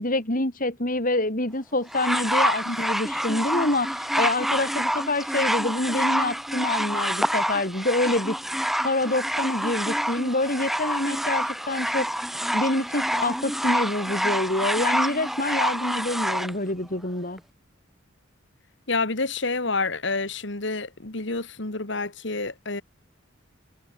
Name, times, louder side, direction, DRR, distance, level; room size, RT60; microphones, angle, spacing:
voice 1, 0.0-8.4 8.8-12.1 12.5-17.4, left 2 dB, 45° left, 4.5 m, -26 dB
sound 1, 1.9-16.5 17.4-17.5, equal, ahead, 0.8 m, -27 dB
voice 2, 18.9-22.8, left 3 dB, 60° left, 2.3 m, -28 dB
head